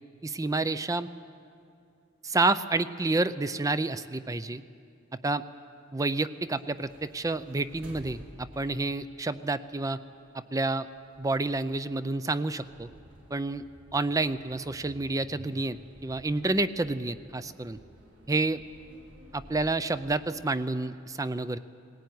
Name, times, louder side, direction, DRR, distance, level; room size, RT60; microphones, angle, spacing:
voice 1, 0.2-1.1 2.2-4.6 5.2-5.4 5.9-10.0 10.3-10.9 11.2-12.9 13.3-13.6 13.9-15.8 16.0-17.8 18.3-18.6 19.3-21.6, right 2 dB, 15° right, 13 dB, 0.5 m, -29 dB
sound 1, 6.3-20.3, equal, 75° right, 4.3 m, -53 dB
19.0 x 17.5 x 9.4 m, 2.5 s
head